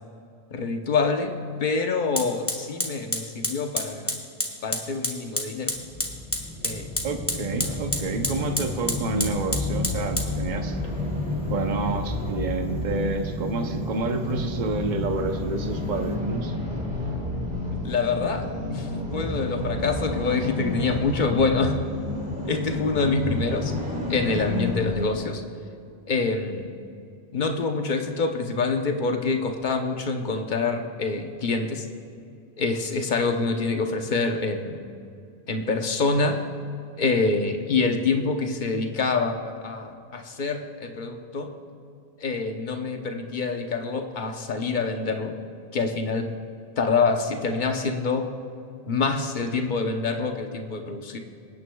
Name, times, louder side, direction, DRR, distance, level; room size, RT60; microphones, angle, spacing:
voice 1, 0.5-4.2 4.6-5.7 6.6-7.0 17.8-21.8 22.4-23.7 24.1-25.4 26.1-26.7 27.3-31.9 32.6-34.9 35.5-36.4 37.0-41.5 42.2-45.4 45.7-46.3 46.8-48.3 48.9-51.2, left 4 dB, 50° left, 4 dB, 1.0 m, -26 dB
Fire, 1.1-1.2 2.2-16.2, left 1 dB, 15° left, 1.4 m, -33 dB
sound 1, 5.7-25.1, left 2 dB, 5° right, 2.6 m, -30 dB
voice 2, 7.0-10.8 11.5-16.5, right 3 dB, 50° right, 5 dB, 0.9 m, -29 dB
26.0 x 9.6 x 2.3 m, 2.5 s
omnidirectional pair, 1.1 m